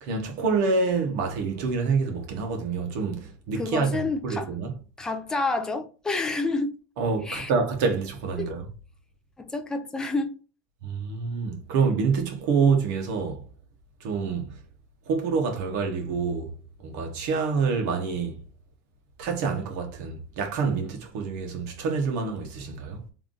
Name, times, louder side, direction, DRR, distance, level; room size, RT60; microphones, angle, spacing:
voice 1, 0.0-4.7 7.0-8.6 10.8-13.4 14.0-14.5 15.1-16.5 16.8-18.4 19.2-23.0, right 5 dB, 60° right, 1.2 m, -27 dB
voice 2, 3.6-4.5 5.0-6.8 7.2-7.5 8.3-8.5 9.4-10.4, left 3 dB, 5° left, 0.4 m, -29 dB
3.4 x 2.6 x 3.7 m
cardioid pair, 175°, 10 cm